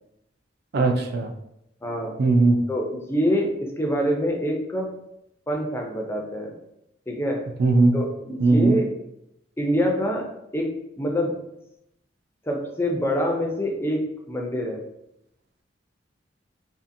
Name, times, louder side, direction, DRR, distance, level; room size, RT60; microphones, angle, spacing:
voice 1, 0.7-1.3 2.2-2.6 7.6-8.0 8.4-8.8, right 3 dB, 60° right, 6 dB, 0.3 m, -19 dB
voice 2, 1.8-2.2 2.7-4.9 5.5-6.6 7.1-7.5 7.9-8.9 9.6-11.4 12.5-14.8, equal, 15° left, 1 dB, 0.4 m, -26 dB
2.6 x 2.4 x 2.6 m, 0.81 s
head